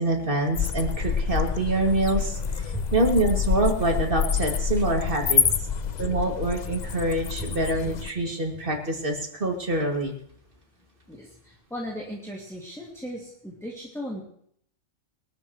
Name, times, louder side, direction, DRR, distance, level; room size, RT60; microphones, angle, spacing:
voice 1, 0.0-5.4 6.0-10.1, right 2 dB, 45° right, 1 dB, 2.6 m, -25 dB
sound 1, 0.5-8.1, left 6 dB, 45° left, 0.6 m, -27 dB
voice 2, 11.1-14.2, equal, ahead, -5 dB, 2.4 m, -36 dB
23.0 x 13.0 x 3.2 m, 0.65 s
omnidirectional pair, 1.3 m